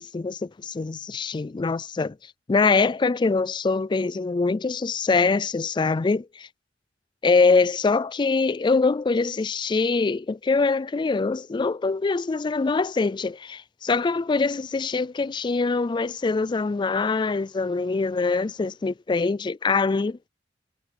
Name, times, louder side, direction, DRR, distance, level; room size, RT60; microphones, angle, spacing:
voice 1, 0.0-2.2 2.5-6.5 7.2-20.2, left 4 dB, 25° left, 0.3 m, -23 dB
head